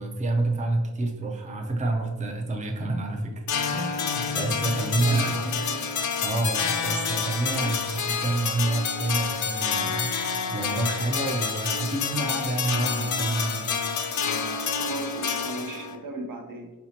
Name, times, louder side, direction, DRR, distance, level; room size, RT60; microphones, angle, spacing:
voice 1, 0.0-3.5 3.7-5.3 6.2-10.2 10.5-13.7, right 2 dB, 20° right, 2 dB, 0.5 m, -28 dB
sound 1, 3.5-16.0, left 6 dB, 60° left, 0.5 m, -28 dB
voice 2, 4.8-5.8 7.6-7.7 14.7-16.7, right 2 dB, 70° right, 4 dB, 0.7 m, -37 dB
4.4 x 4.1 x 2.8 m, 1.2 s
wide cardioid pair, 110°, 34 cm